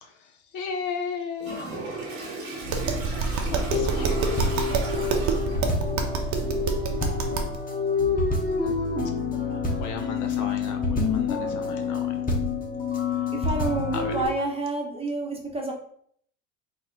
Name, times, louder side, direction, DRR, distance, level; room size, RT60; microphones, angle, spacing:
voice 1, 0.0-1.6 2.0-2.3 3.1-4.4 9.0-9.1 9.5-12.2 13.1-13.3 13.9-14.2, left 5 dB, 45° left, 5 dB, 0.6 m, -36 dB
Toilet flush, 1.4-5.8, right 2 dB, 85° right, 1.5 m, -37 dB
Tap, 2.6-7.6, right 4 dB, 45° right, 0.8 m, -27 dB
sound 1, 3.7-14.3, left 4 dB, 20° left, 1.1 m, -27 dB
voice 2, 13.3-15.7, right 2 dB, 15° right, 0 dB, 0.9 m, -29 dB
4.2 x 2.1 x 3.9 m, 0.62 s
hypercardioid pair, 95°, 41 cm